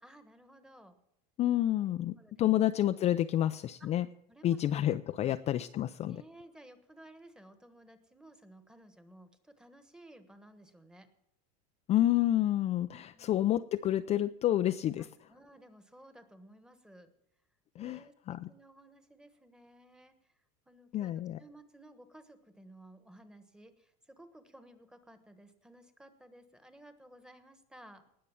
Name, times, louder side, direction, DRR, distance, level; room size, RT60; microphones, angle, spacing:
voice 1, 0.0-1.0 2.2-2.6 3.8-4.0 4.3-5.4 6.0-11.1 13.1-13.3 15.0-17.1 17.8-20.3 20.7-28.1, right 1 dB, 5° right, 9 dB, 1.3 m, -56 dB
voice 2, 1.4-4.1 4.4-6.2 11.9-15.1 17.8-18.5 20.9-21.4, left 12 dB, 30° left, 9 dB, 0.4 m, -29 dB
19.0 x 6.6 x 7.1 m, 0.81 s
supercardioid pair, 125°, 21 cm